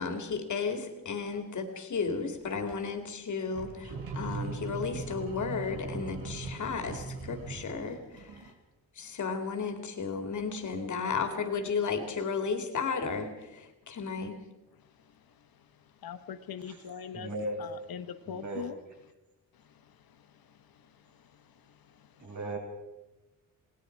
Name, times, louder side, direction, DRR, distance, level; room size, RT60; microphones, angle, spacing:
voice 1, 0.0-8.4 9.0-14.4, left 5 dB, 55° left, 2.9 m, -34 dB
sound 1, 2.3-2.7 3.5-8.5, right 4 dB, 80° right, 4.3 m, -40 dB
voice 2, 16.0-17.3 17.6-18.7, left 8 dB, 85° left, 1.4 m, -40 dB
voice 3, 17.1-17.7 18.3-18.7 22.2-22.6, right 1 dB, 55° right, 7.6 m, -36 dB
29.0 x 20.0 x 4.8 m
wide cardioid pair, 165°, 35 cm